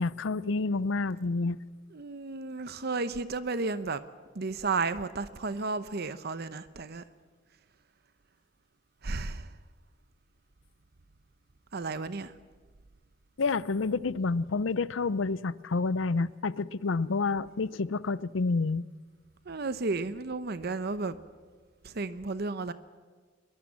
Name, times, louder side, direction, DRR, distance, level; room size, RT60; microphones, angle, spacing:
voice 1, 0.0-1.6 13.4-18.9, left 3 dB, 85° left, 0.6 m, -29 dB
voice 2, 1.9-4.0 4.3-7.0 9.0-9.5 11.7-12.3 19.5-21.1 21.8-22.7, right 3 dB, 55° right, 0.8 m, -33 dB
23.5 x 21.0 x 7.4 m
head